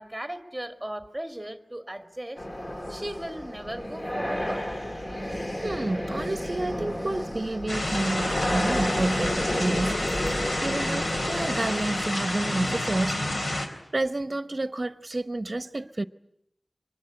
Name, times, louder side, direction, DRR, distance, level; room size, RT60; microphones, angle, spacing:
voice 1, 0.0-2.4 2.9-4.7, right 1 dB, 5° right, 2.0 m, -37 dB
sound 1, 2.4-12.2, left 1 dB, 35° left, 2.2 m, -32 dB
voice 2, 5.6-10.1 10.6-13.2 13.9-16.0, right 2 dB, 45° right, 0.9 m, -30 dB
sound 2, 7.7-13.7, left 1 dB, 75° left, 3.8 m, -29 dB
24.0 x 20.5 x 9.8 m
wide cardioid pair, 70°, 0 cm